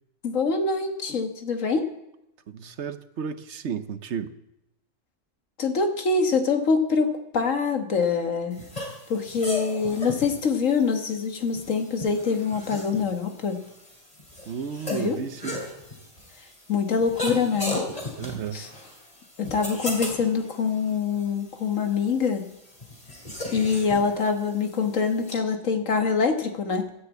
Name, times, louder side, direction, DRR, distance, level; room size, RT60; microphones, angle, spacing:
voice 1, 0.2-1.9 5.6-8.6 9.1-13.6 14.9-15.2 16.7-17.8 18.5-18.7 19.4-22.5 23.5-26.9, left 5 dB, 80° left, 1.8 m, -25 dB
voice 2, 2.5-4.3 14.5-15.7 18.1-18.6, right 7 dB, 65° right, 1.1 m, -33 dB
sound 1, 8.5-25.3, left 1 dB, 30° left, 3.2 m, -37 dB
13.0 x 10.0 x 8.3 m
omnidirectional pair, 1.3 m